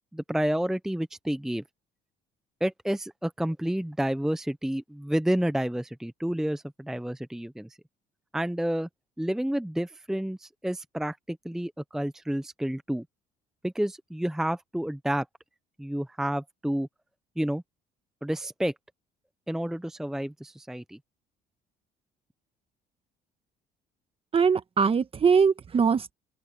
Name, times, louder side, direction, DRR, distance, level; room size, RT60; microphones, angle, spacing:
voice 1, 0.1-1.6 2.6-7.7 8.3-8.9 9.2-13.0 13.6-15.3 15.8-16.9 17.4-17.6 18.2-18.7 19.5-21.0, right 1 dB, 5° right, 0.7 m, -30 dB
voice 2, 24.3-26.1, right 6 dB, 35° right, 1.4 m, -22 dB
open air
cardioid pair, 110°, 17 cm